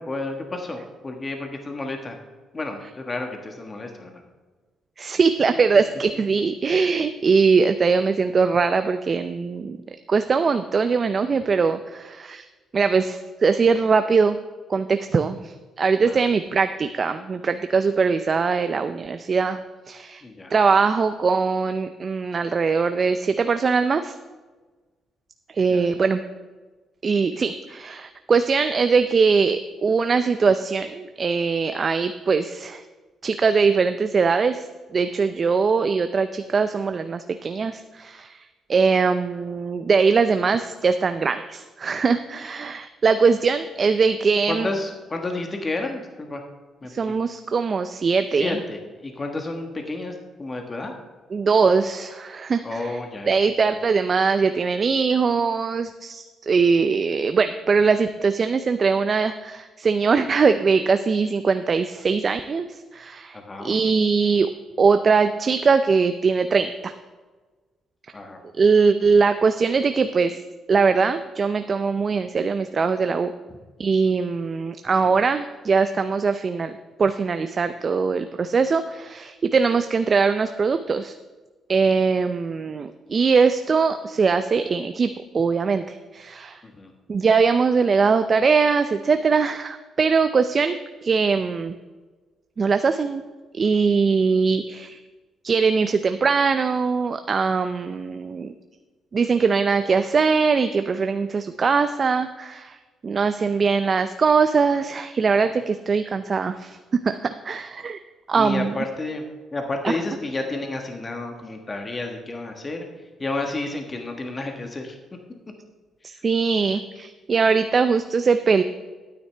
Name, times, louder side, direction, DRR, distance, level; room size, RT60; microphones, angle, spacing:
voice 1, 0.0-2.2 2.5-4.2 6.1-6.2 16.0-16.2 20.2-20.5 25.7-25.9 44.5-46.4 46.8-47.1 48.3-50.9 52.6-53.3 63.3-63.8 68.1-68.4 75.0-75.1 86.6-86.9 108.3-109.2 109.5-112.9 113.2-115.0 116.0-116.2 117.4-117.5, left 2 dB, 30° left, 3 dB, 1.4 m, -31 dB
voice 2, 5.0-9.8 10.1-12.4 12.7-14.4 14.7-19.6 19.9-20.2 20.5-24.1 25.5-26.2 27.0-32.8 33.2-34.7 34.9-38.4 38.7-44.7 46.9-48.6 51.3-53.0 53.3-62.7 62.9-64.5 64.8-66.9 68.6-70.4 70.7-73.3 73.8-81.1 81.7-85.1 85.3-86.6 87.1-91.8 92.6-93.2 93.5-95.0 95.4-98.5 99.1-102.8 103.0-106.8 107.0-108.0 108.3-108.7 109.8-109.9 116.0-118.6, right 5 dB, 40° right, 9 dB, 0.4 m, -21 dB
12.0 x 9.4 x 3.4 m, 1.3 s
cardioid pair, 90°, 0 cm